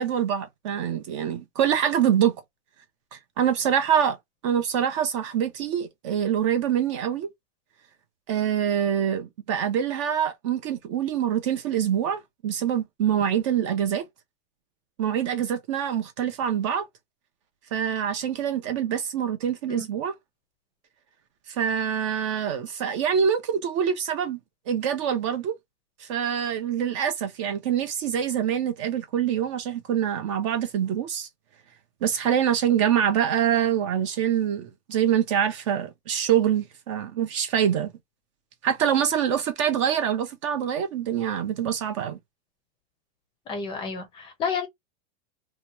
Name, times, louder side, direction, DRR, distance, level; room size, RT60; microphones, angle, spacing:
voice 1, 0.0-2.4 3.1-4.2 4.4-7.3 8.3-14.0 15.0-16.9 17.7-20.1 21.5-24.4 24.7-25.6 26.0-31.3 32.0-37.9 38.6-42.2, right 9 dB, 30° right, 0.4 m, -25 dB
voice 2, 43.5-44.7, left 5 dB, 15° left, 0.6 m, -30 dB
2.8 x 2.2 x 2.9 m
supercardioid pair, 165°, 30 cm